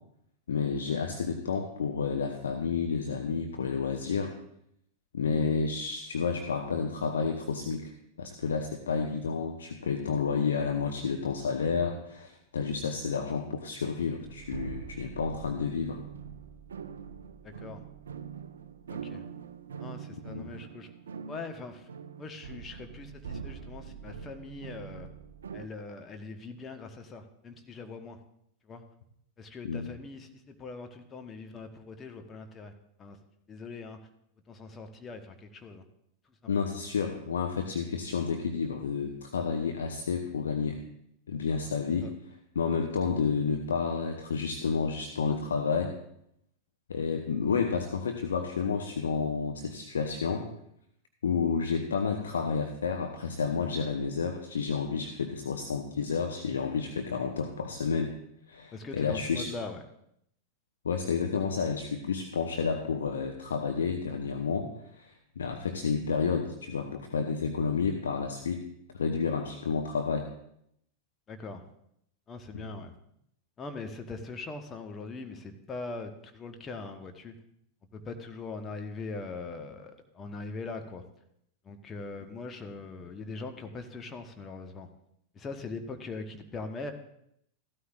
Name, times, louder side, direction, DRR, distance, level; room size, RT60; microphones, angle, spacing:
voice 1, 0.5-4.3 5.1-7.9 8.2-16.0 20.3-20.5 29.6-29.9 36.5-40.8 41.3-42.1 42.6-45.9 46.9-50.5 51.2-58.1 58.5-59.5 60.8-68.6 68.9-70.2 72.5-72.7, left 5 dB, 70° left, 5 dB, 0.8 m, -30 dB
sound 1, 14.2-25.7, right 6 dB, 65° right, 0.5 m, -43 dB
voice 2, 17.4-17.8 18.9-19.2 19.8-20.9 21.3-21.9 22.2-25.1 25.5-28.2 28.6-28.8 29.4-32.7 33.0-33.2 33.5-34.0 34.5-35.8 36.2-36.3 41.6-41.7 42.0-42.1 58.7-59.8 71.3-71.6 72.3-72.9 73.6-77.3 77.9-81.0 81.6-84.9 85.3-86.9, left 3 dB, 20° left, 5 dB, 1.0 m, -41 dB
15.0 x 13.0 x 2.4 m, 0.74 s
figure-of-eight pair, 90°, 0 cm